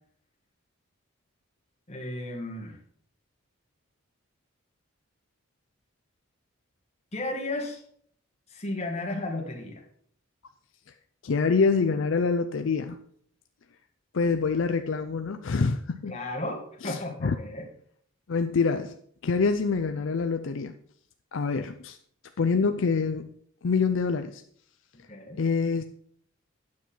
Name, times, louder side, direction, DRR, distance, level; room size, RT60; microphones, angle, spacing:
voice 1, 1.9-2.8 7.1-7.8 8.5-9.8 16.1-17.7 25.1-25.4, left 2 dB, 30° left, 0 dB, 1.9 m, -34 dB
voice 2, 11.2-13.0 14.1-16.1 16.8-17.3 18.3-19.0 19.2-20.7 21.3-22.0 22.4-23.3 23.6-24.4 25.4-25.8, left 4 dB, 65° left, 8 dB, 0.5 m, -26 dB
9.5 x 7.5 x 4.4 m, 0.63 s
head